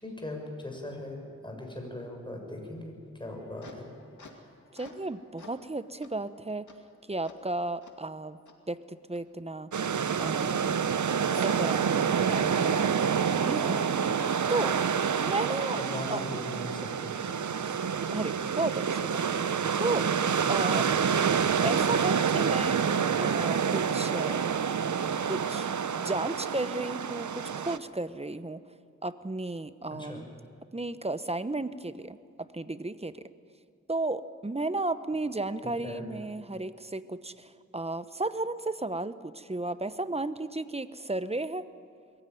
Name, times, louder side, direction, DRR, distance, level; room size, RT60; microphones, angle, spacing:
voice 1, 0.0-3.9 15.6-17.1 29.9-30.2 35.6-36.0, left 1 dB, 15° left, 2 dB, 6.0 m, -39 dB
sound 1, 3.2-5.1 5.4-5.6 6.0-6.1 6.7-6.8 7.2-7.4 7.8-7.9 8.5-8.6 9.1-9.2, left 3 dB, 75° left, 2.5 m, -52 dB
voice 2, 4.7-6.7 7.1-8.4 8.7-9.7 10.2-10.6 11.3-13.8 14.5-14.8 15.1-15.8 16.1-16.2 17.6-17.8 18.1-19.4 19.8-20.1 20.5-20.9 21.6-24.4 25.3-25.7 26.0-28.6 29.0-30.3 30.7-32.2 32.5-33.3 33.9-41.7, right 2 dB, 20° right, 13 dB, 0.9 m, -34 dB
sound 2, 9.7-27.8, right 7 dB, 75° right, 0.8 m, -28 dB
22.0 x 15.5 x 9.3 m, 2.3 s
cardioid pair, 55°, 30 cm